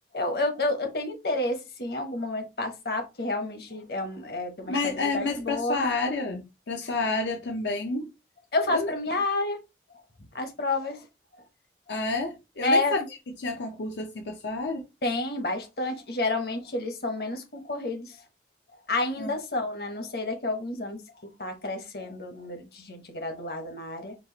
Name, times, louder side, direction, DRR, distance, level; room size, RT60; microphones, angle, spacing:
voice 1, 0.1-5.9 8.5-9.6 9.9-10.0 10.3-11.1 12.6-12.9 15.0-18.2 18.9-24.1, left 2 dB, 60° left, 1.1 m, -30 dB
voice 2, 4.7-8.1 8.7-8.9 11.9-13.1 13.4-14.9 19.2-19.3, left 3 dB, 85° left, 0.7 m, -29 dB
4.6 x 2.5 x 3.9 m
head